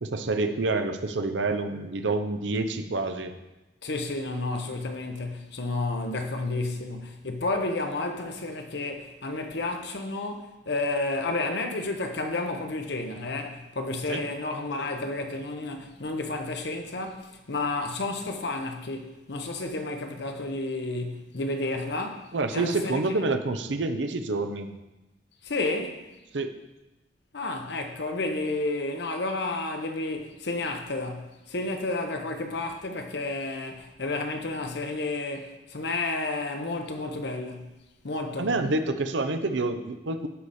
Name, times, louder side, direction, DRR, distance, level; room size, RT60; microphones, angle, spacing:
voice 1, 0.0-3.3 14.1-14.2 22.3-24.7 26.3-26.5 38.4-40.3, right 3 dB, 85° right, 0.7 m, -27 dB
voice 2, 3.8-23.0 25.4-26.1 27.3-37.7 38.0-38.5, left 2 dB, 65° left, 0.9 m, -31 dB
11.5 x 4.9 x 4.2 m
head